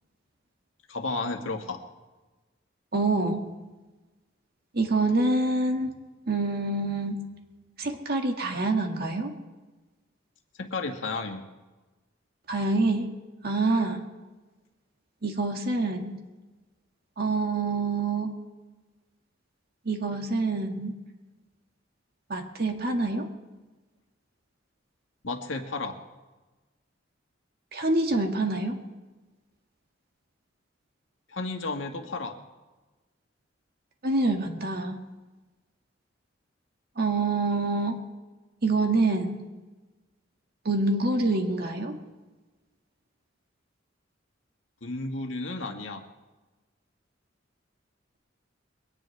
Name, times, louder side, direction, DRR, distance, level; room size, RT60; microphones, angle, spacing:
voice 1, 0.9-1.8 10.6-11.4 25.2-26.0 31.3-32.4 44.8-46.0, left 3 dB, 90° left, 4 dB, 1.7 m, -32 dB
voice 2, 2.9-3.5 4.7-5.9 6.3-7.2 7.8-9.3 12.5-13.1 13.4-14.0 15.2-16.2 17.2-18.3 19.9-20.9 22.3-23.3 27.7-28.8 34.0-35.0 37.0-38.0 38.6-39.4 40.7-42.0, right 2 dB, 55° right, 3 dB, 1.9 m, -26 dB
22.5 x 18.0 x 3.4 m, 1.2 s
head